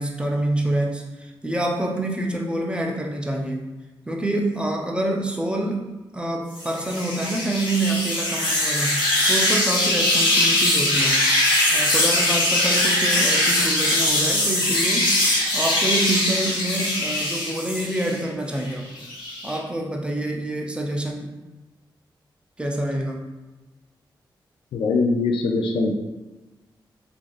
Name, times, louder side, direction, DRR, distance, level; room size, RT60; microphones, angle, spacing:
voice 1, 0.0-3.7 4.1-5.9 6.1-11.2 11.7-15.2 15.5-19.1 19.4-21.4 22.6-23.3, right 1 dB, 10° right, 1 dB, 0.5 m, -27 dB
sound 1, 6.5-18.2 18.6-19.6, left 1 dB, 65° left, 1.1 m, -21 dB
voice 2, 24.7-25.9, left 3 dB, 85° left, 2 dB, 0.4 m, -22 dB
3.1 x 2.6 x 2.5 m, 1.1 s
cardioid pair, 65°, 9 cm